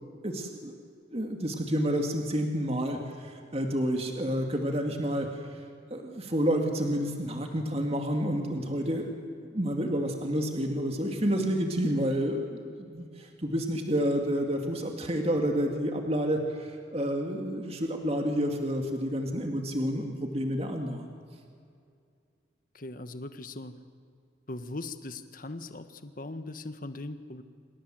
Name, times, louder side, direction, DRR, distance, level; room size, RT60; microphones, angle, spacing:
voice 1, 0.2-0.7 1.1-5.6 5.9-9.1 9.5-21.1, equal, 30° right, 3 dB, 2.3 m, -29 dB
voice 2, 22.7-23.8 24.5-27.4, left 2 dB, 45° left, 9 dB, 1.4 m, -39 dB
28.0 x 27.0 x 7.7 m, 2.3 s
head